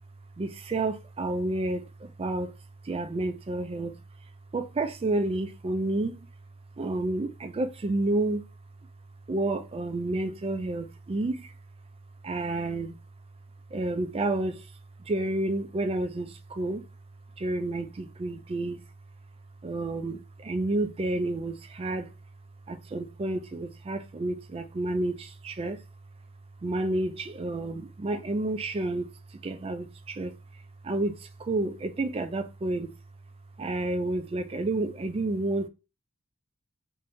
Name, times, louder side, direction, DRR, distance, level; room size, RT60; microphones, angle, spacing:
voice 1, 0.4-2.5 2.8-4.0 4.5-6.2 6.8-8.4 9.3-11.5 12.2-13.0 13.7-14.7 15.1-16.8 17.4-18.8 19.6-22.1 22.7-25.8 26.6-29.1 29.4-30.3 30.8-32.9 33.6-35.7, right 2 dB, 25° right, 0.3 m, -30 dB
2.7 x 2.6 x 3.3 m
head